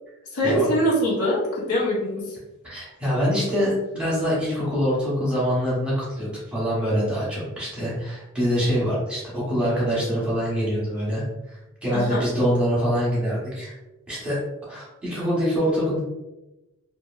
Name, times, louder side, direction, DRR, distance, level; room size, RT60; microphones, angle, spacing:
voice 1, 0.3-2.4 11.9-12.2, equal, 85° left, -5 dB, 1.0 m, -23 dB
voice 2, 2.6-13.7 14.1-14.4 14.7-16.0, equal, 5° right, -8 dB, 1.0 m, -24 dB
2.9 x 2.5 x 2.4 m, 1.0 s
head